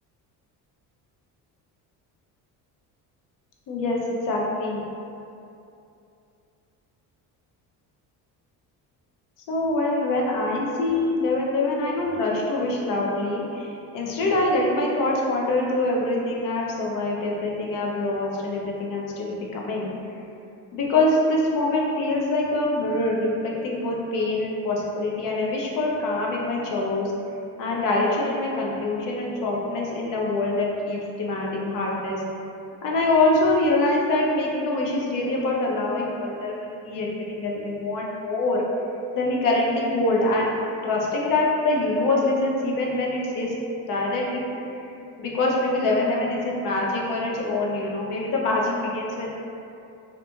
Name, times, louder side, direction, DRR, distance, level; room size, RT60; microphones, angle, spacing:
voice 1, 3.7-4.0 4.2-4.8 9.5-20.0 20.7-27.1 27.6-32.2 32.8-38.6 39.1-40.5 40.8-43.5 43.9-44.4 44.9-49.3, left 2 dB, 55° left, -3 dB, 0.6 m, -24 dB
2.8 x 2.6 x 2.2 m, 2.7 s
cardioid pair, 160°, 38 cm